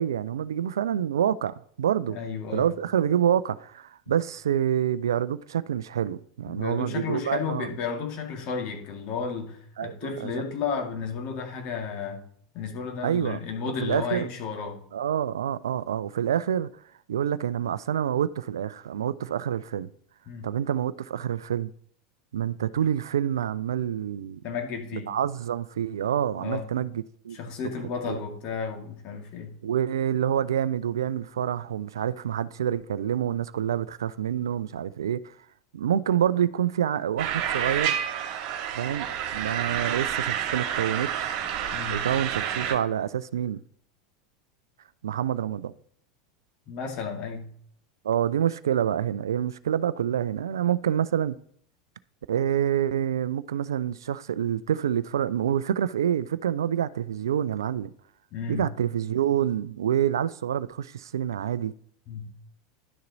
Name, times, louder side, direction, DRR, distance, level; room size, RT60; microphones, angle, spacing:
voice 1, 0.0-2.2 2.5-7.7 9.8-10.3 13.0-13.4 13.8-14.3 14.9-16.7 17.1-19.9 20.4-21.7 22.3-24.4 25.1-27.4 28.0-28.2 29.6-35.3 35.7-38.0 38.8-39.1 39.3-41.3 41.9-43.6 45.0-45.7 48.0-51.4 52.3-57.9 58.5-61.7, right 9 dB, 70° right, 0.4 m, -27 dB
voice 2, 2.1-2.7 6.5-12.2 12.5-14.8 20.3-20.5 24.4-25.1 26.4-26.7 27.3-29.6 41.7-42.1 46.7-47.5 58.3-58.7 62.1-62.3, left 6 dB, 45° left, 2.0 m, -33 dB
sound 1, 37.2-42.7, right 9 dB, 50° right, 1.8 m, -29 dB
11.0 x 6.6 x 4.0 m
figure-of-eight pair, 85°, 2 cm